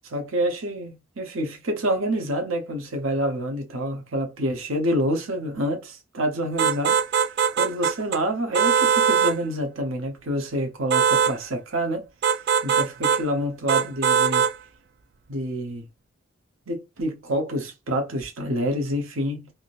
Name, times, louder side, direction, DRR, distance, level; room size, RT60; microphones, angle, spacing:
voice 1, 0.0-7.0 7.6-12.1 12.6-14.5 15.3-15.9 16.7-19.5, equal, 80° right, 0.9 m, -27 dB
sound 1, 6.6-8.2 8.5-9.4 10.9-11.4 12.2-13.2 13.7-14.6, right 7 dB, 50° right, 0.3 m, -21 dB
3.6 x 2.7 x 2.5 m
head